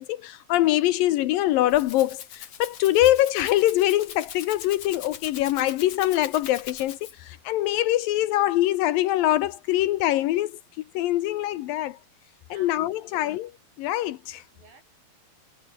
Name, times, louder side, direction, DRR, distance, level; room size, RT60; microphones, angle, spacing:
voice 1, 0.0-12.0 12.5-13.5 13.8-14.4, left 14 dB, 75° left, 2.4 m, -24 dB
Rattle (instrument), 1.5-7.4, left 9 dB, 50° left, 2.8 m, -42 dB
voice 2, 12.5-13.3 14.5-14.8, right 4 dB, 65° right, 8.4 m, -55 dB
omnidirectional pair, 4.4 m